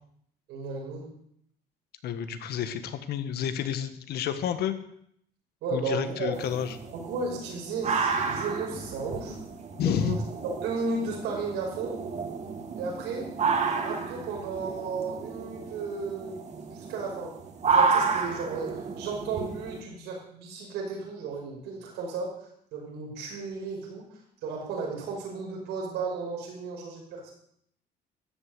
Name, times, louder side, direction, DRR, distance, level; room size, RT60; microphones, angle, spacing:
voice 1, 0.5-1.1 5.6-6.3 6.9-9.4 9.8-10.2 10.6-12.0 12.7-13.3 13.8-16.4 16.7-17.3 17.7-22.3 22.7-24.0 24.4-27.3, right 4 dB, 90° right, -2 dB, 5.7 m, -34 dB
voice 2, 2.0-4.7 5.7-6.8 9.8-10.2, left 9 dB, 70° left, 10 dB, 1.6 m, -30 dB
sound 1, 6.3-19.8, right 5 dB, 40° right, 2.1 m, -31 dB
13.5 x 8.5 x 8.1 m, 0.70 s
cardioid pair, 110°, 17 cm